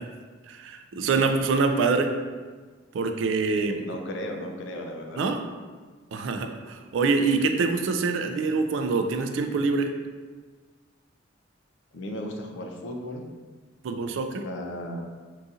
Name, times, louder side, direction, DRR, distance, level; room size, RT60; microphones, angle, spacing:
voice 1, 0.5-2.1 2.9-3.8 5.2-5.4 6.1-9.9 13.8-14.4, right 4 dB, 75° right, 6 dB, 0.3 m, -25 dB
voice 2, 3.6-5.3 11.9-13.2 14.0-14.2 14.4-15.0, left 1 dB, 70° left, 2 dB, 0.4 m, -35 dB
3.8 x 2.7 x 2.4 m, 1.4 s
head